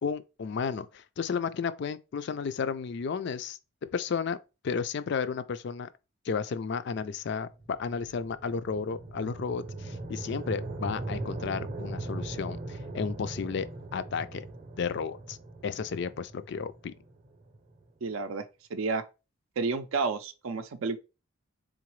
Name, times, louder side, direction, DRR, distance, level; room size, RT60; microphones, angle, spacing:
voice 1, 0.0-3.6 3.9-4.4 4.6-5.9 6.3-13.7 13.9-14.5 14.8-15.4 15.6-16.9, left 6 dB, 50° left, 0.3 m, -33 dB
sound 1, 7.5-17.8, right 2 dB, 30° right, 0.7 m, -40 dB
voice 2, 18.0-18.4 18.7-19.0 19.6-21.0, right 4 dB, 70° right, 0.4 m, -30 dB
3.8 x 3.8 x 3.1 m
head